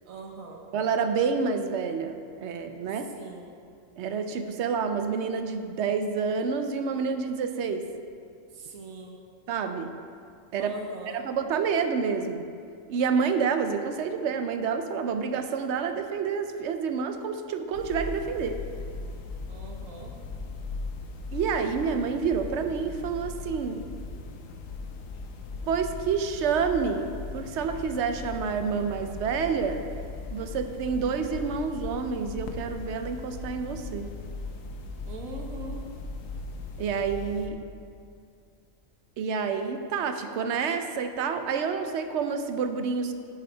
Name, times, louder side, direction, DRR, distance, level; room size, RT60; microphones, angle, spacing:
voice 1, 0.1-0.6 3.1-3.6 8.5-9.2 10.6-11.2 19.5-20.1 35.0-35.8, right 3 dB, 85° right, 1 dB, 1.3 m, -41 dB
voice 2, 0.7-3.1 4.0-7.9 9.5-9.9 10.5-10.8 11.1-12.4 12.9-18.6 21.3-23.9 25.7-29.8 30.3-34.1 36.8-37.6 39.2-43.1, right 5 dB, 65° right, 8 dB, 0.8 m, -28 dB
sound 1, 17.7-37.5, left 3 dB, 75° left, 1.1 m, -38 dB
9.7 x 4.8 x 4.5 m, 2.4 s
omnidirectional pair, 1.4 m